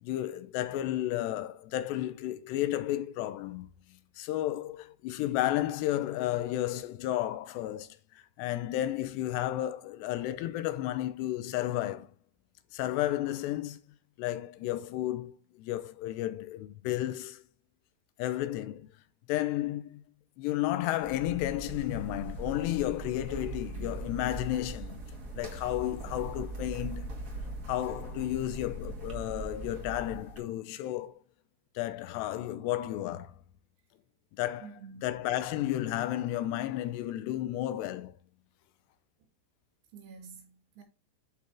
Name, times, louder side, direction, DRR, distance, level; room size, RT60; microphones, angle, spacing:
voice 1, 0.0-12.1 12.7-13.8 14.2-17.4 18.2-18.9 19.3-20.0 20.4-25.0 25.3-27.1 27.7-31.2 31.8-33.4 34.4-38.2, left 14 dB, 85° left, 2.9 m, -32 dB
sound 1, 21.0-30.4, right 2 dB, 45° right, 1.2 m, -40 dB
voice 2, 34.6-35.1 39.9-40.8, right 5 dB, 80° right, 4.3 m, -49 dB
12.0 x 4.1 x 3.6 m
omnidirectional pair, 4.9 m